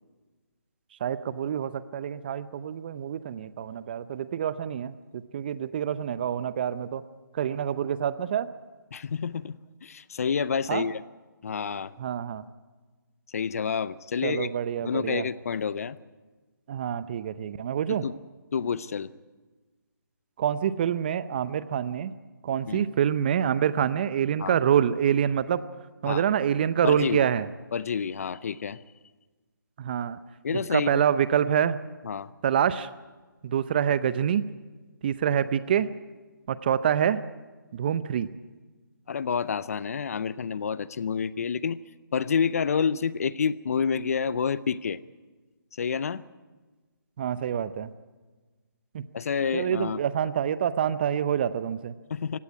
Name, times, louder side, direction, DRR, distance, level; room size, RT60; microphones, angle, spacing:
voice 1, 1.0-7.0 7.3-8.5 10.7-10.8 12.0-12.4 14.2-15.2 16.7-18.0 20.4-22.1 22.4-25.6 26.0-27.5 29.8-30.2 30.5-31.8 32.4-32.9 33.4-34.4 35.0-35.9 36.5-37.2 37.7-38.3 47.2-47.9 48.9-49.0 49.5-51.9, right 9 dB, 30° right, 16 dB, 0.6 m, -26 dB
voice 2, 8.9-11.0 11.4-11.9 13.3-14.5 14.8-16.0 17.9-18.2 18.5-19.1 22.7-22.8 24.4-24.5 26.0-26.2 26.8-27.3 27.7-28.8 30.4-31.0 32.0-32.3 39.1-41.8 42.1-45.0 45.8-46.2 49.1-50.0 52.1-52.4, left 6 dB, 45° left, 19 dB, 0.6 m, -28 dB
17.0 x 16.0 x 9.7 m, 1.3 s
figure-of-eight pair, 155°, 11 cm